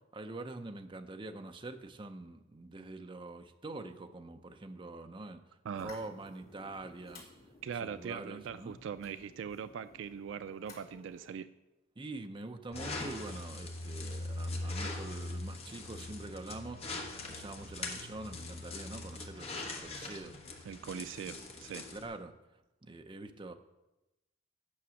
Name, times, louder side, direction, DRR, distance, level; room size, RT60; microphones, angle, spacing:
voice 1, 0.1-5.4 5.7-7.2 7.8-8.8 12.0-20.3 21.3-21.4 21.9-22.3 22.8-23.5, right 2 dB, 25° right, 7 dB, 0.6 m, -45 dB
sound 1, 5.8-11.4, left 2 dB, 50° left, 2.6 m, -56 dB
voice 2, 7.6-11.5 20.6-21.8, right 7 dB, 70° right, 13 dB, 0.3 m, -41 dB
sound 2, 12.7-22.1, left 2 dB, 30° left, 1.2 m, -41 dB
8.6 x 6.0 x 6.3 m, 0.98 s
head